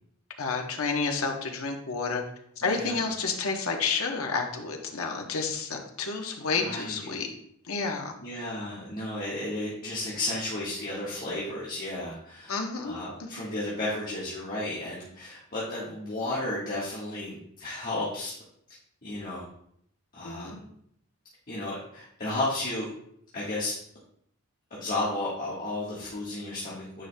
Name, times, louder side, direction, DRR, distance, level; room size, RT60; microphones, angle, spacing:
voice 1, 0.4-2.2 2.6-7.3 7.7-8.1 12.5-13.0 20.2-20.6, left 4 dB, 75° left, 3 dB, 0.9 m, -30 dB
voice 2, 2.6-3.0 6.6-7.1 8.2-18.3 19.0-19.4 20.1-20.6 21.5-22.9 23.3-23.7 24.7-27.1, left 2 dB, 40° left, -8 dB, 1.4 m, -33 dB
9.1 x 5.0 x 2.2 m, 0.70 s
head